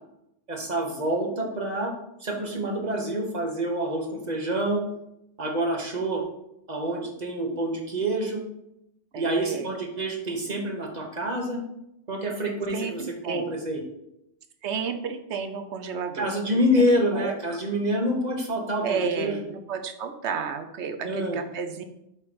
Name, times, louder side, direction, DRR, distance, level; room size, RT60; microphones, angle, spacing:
voice 1, 0.5-1.9 2.2-4.8 5.4-6.2 6.7-8.4 9.1-11.6 12.1-13.8 16.1-19.4 21.0-21.4, equal, 40° right, 1 dB, 1.2 m, -27 dB
voice 2, 9.1-9.7 12.7-13.5 14.6-16.3 16.7-16.8 17.1-17.3 18.8-21.8, right 6 dB, 75° right, 7 dB, 1.0 m, -31 dB
7.1 x 3.3 x 5.2 m, 0.83 s
omnidirectional pair, 1.2 m